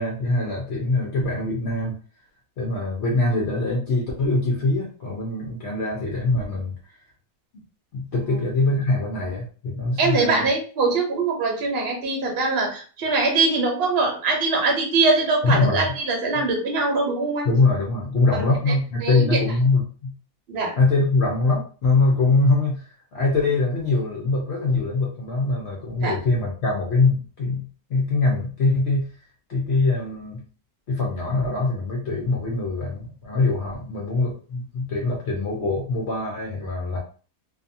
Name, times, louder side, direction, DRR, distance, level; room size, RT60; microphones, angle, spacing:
voice 1, 0.0-2.0 2.6-6.7 7.9-10.5 15.4-16.0 16.3-16.4 17.4-20.1 20.8-22.8 23.1-29.1 29.5-30.4 30.9-37.0, left 3 dB, 60° left, -2 dB, 0.7 m, -23 dB
voice 2, 10.0-17.5 18.3-18.7 19.0-19.4 20.5-20.7 26.0-26.1, right 3 dB, 50° right, 0 dB, 0.9 m, -22 dB
2.6 x 2.3 x 2.6 m, 0.39 s
omnidirectional pair, 1.6 m